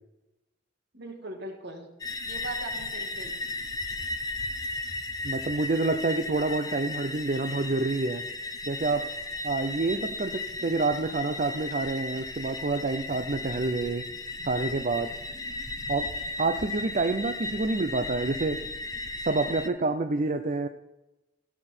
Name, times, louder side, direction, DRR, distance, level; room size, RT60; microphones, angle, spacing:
voice 1, 0.9-1.9 2.2-3.4, right 2 dB, 55° right, 3 dB, 1.9 m, -40 dB
sound 1, 2.0-19.7, left 2 dB, 20° left, 0.8 m, -35 dB
voice 2, 5.2-8.2 8.7-9.1 9.4-14.0 14.4-15.1 15.9-16.1 16.4-18.6 19.3-20.7, right 3 dB, 40° right, 8 dB, 0.6 m, -28 dB
16.0 x 6.8 x 4.4 m, 1.0 s
head